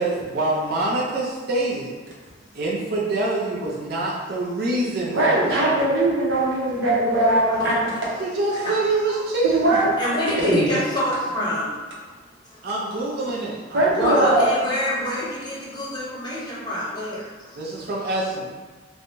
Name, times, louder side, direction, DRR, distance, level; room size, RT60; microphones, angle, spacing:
voice 1, 0.0-1.9 2.5-5.8 8.2-9.8 12.6-14.3 17.6-18.5, right 2 dB, 55° right, -4 dB, 0.5 m, -26 dB
voice 2, 5.1-7.8 9.4-9.9 10.4-10.7 13.7-14.5, right 1 dB, 90° right, -5 dB, 0.8 m, -20 dB
voice 3, 7.6-8.0 8.5-8.8 9.1-9.2 10.0-11.7 12.5-12.6 14.0-17.6, left 1 dB, 25° left, -7 dB, 0.8 m, -27 dB
3.3 x 2.2 x 2.5 m, 1.3 s
head